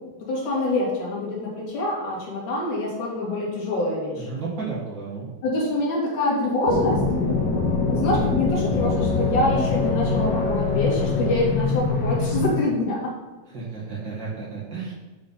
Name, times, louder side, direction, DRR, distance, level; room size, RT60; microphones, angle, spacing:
voice 1, 0.2-4.3 5.4-7.0 7.9-13.0, left 1 dB, 90° left, -5 dB, 3.7 m, -25 dB
voice 2, 4.2-5.3 13.5-14.9, right 4 dB, 45° right, -6 dB, 2.2 m, -32 dB
sound 1, 6.7-12.5, left 4 dB, 40° left, 2.2 m, -23 dB
9.5 x 5.0 x 4.2 m, 1.2 s
omnidirectional pair, 3.3 m